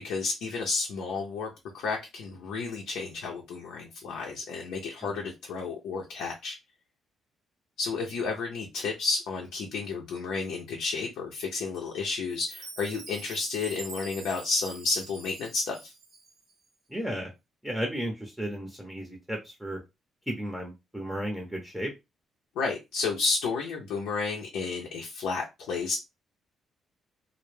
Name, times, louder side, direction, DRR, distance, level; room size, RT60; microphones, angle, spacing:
voice 1, 0.0-6.6 7.8-15.9 22.6-26.0, left 4 dB, 90° left, 0 dB, 0.5 m, -31 dB
Chime, 12.3-16.5, right 3 dB, 65° right, 0.9 m, -45 dB
voice 2, 16.9-17.3 17.6-19.8 20.3-21.9, equal, 5° right, 1 dB, 0.6 m, -34 dB
2.2 x 2.0 x 3.1 m, 0.23 s
cardioid pair, 90°, 0 cm